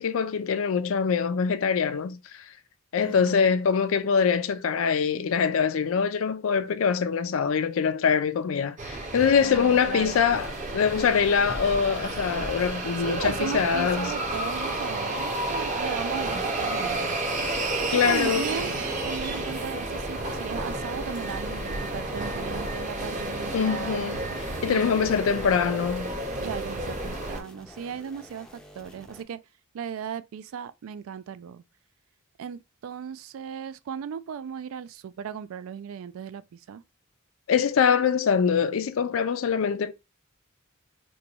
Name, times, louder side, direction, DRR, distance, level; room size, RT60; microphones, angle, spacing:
voice 1, 0.0-2.5 2.9-14.1 17.9-18.5 23.5-24.3 24.6-26.1 37.5-39.9, left 6 dB, 70° left, 0.4 m, -24 dB
voice 2, 3.0-3.5 9.4-10.2 13.0-17.2 17.9-18.7 19.0-24.0 24.7-25.0 26.4-29.4 29.7-31.6 32.4-36.8, right 7 dB, 75° right, 0.3 m, -36 dB
sound 1, 8.8-27.4, right 2 dB, 35° right, 0.7 m, -31 dB
sound 2, 10.3-29.2, equal, 5° left, 0.5 m, -50 dB
3.0 x 2.2 x 3.9 m
head